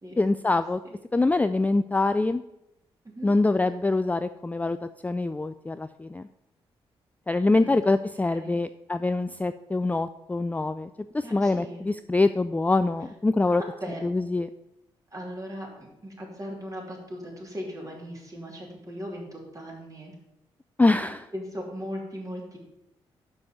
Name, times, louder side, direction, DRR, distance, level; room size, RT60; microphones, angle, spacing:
voice 1, 0.2-0.8 1.1-2.4 3.2-4.8 5.0-6.3 7.3-10.9 11.1-13.6 14.0-14.5 20.8-21.2, left 2 dB, 10° left, 11 dB, 0.3 m, -24 dB
voice 2, 8.3-8.6 11.2-11.9 13.5-14.2 15.1-20.1 20.9-21.1 21.3-22.6, equal, 30° right, -2 dB, 3.0 m, -38 dB
6.1 x 5.3 x 6.6 m, 0.87 s
hypercardioid pair, 40°, 12 cm